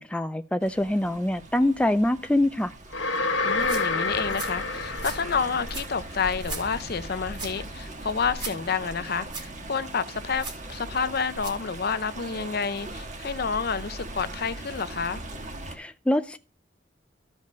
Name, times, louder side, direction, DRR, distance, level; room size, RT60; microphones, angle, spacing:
voice 1, 0.0-2.7 15.7-16.4, left 1 dB, 5° left, 0.4 m, -24 dB
Stream, 0.6-15.8, right 2 dB, 40° right, 1.6 m, -40 dB
sound 1, 2.9-6.0, left 3 dB, 90° left, 1.4 m, -28 dB
voice 2, 3.4-15.2, left 5 dB, 55° left, 0.6 m, -29 dB
sound 2, 3.5-11.7, right 3 dB, 25° right, 2.7 m, -41 dB
13.5 x 5.4 x 5.1 m
head